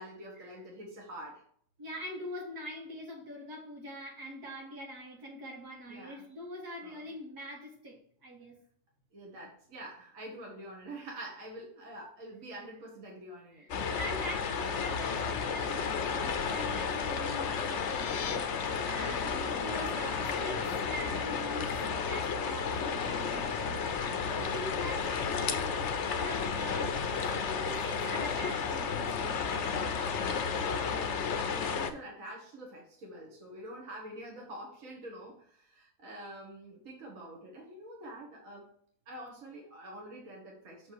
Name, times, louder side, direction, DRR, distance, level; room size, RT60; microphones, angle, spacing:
voice 1, 0.0-1.4 5.9-6.3 6.8-7.1 9.1-13.7 30.4-38.7 39.1-40.9, right 1 dB, 55° right, -1 dB, 1.9 m, -46 dB
voice 2, 1.8-8.6 13.5-13.7 14.0-21.7 22.1-27.0 27.3-29.7, equal, 75° right, -2 dB, 2.7 m, -43 dB
sound 1, 13.7-31.9, left 5 dB, 55° left, 1.0 m, -32 dB
sound 2, 17.6-18.4, left 8 dB, 80° left, 1.3 m, -41 dB
6.7 x 5.6 x 4.7 m, 0.62 s
omnidirectional pair, 1.6 m